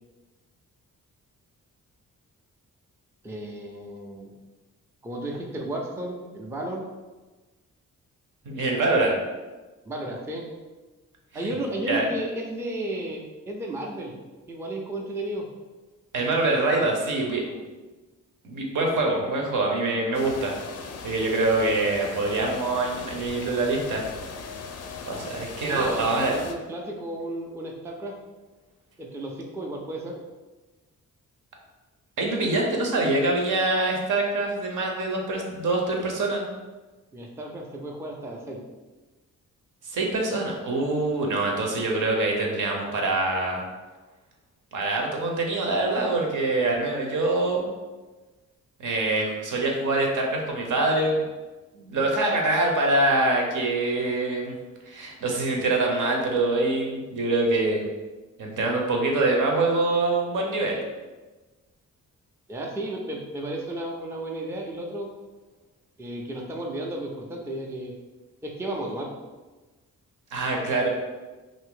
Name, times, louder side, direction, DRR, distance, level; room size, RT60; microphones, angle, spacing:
voice 1, 3.2-4.3 5.0-6.8 9.9-10.5 11.3-14.1 14.5-15.5 25.6-28.1 29.0-30.2 37.1-38.6 62.5-65.1 66.0-67.9 68.4-69.1, right 1 dB, 10° right, 0 dB, 0.4 m, -33 dB
voice 2, 8.5-9.2 11.3-11.5 11.8-12.1 16.1-17.6 18.4-20.6 21.0-24.0 25.0-26.4 32.2-36.4 39.8-43.6 44.7-47.7 48.8-51.3 51.7-54.5 54.9-57.9 58.4-60.8 70.3-70.9, right 2 dB, 70° right, 0 dB, 0.8 m, -24 dB
sound 1, 20.1-26.5, left 5 dB, 50° left, 0.4 m, -39 dB
2.6 x 2.6 x 3.7 m, 1.2 s
cardioid pair, 95°, 32 cm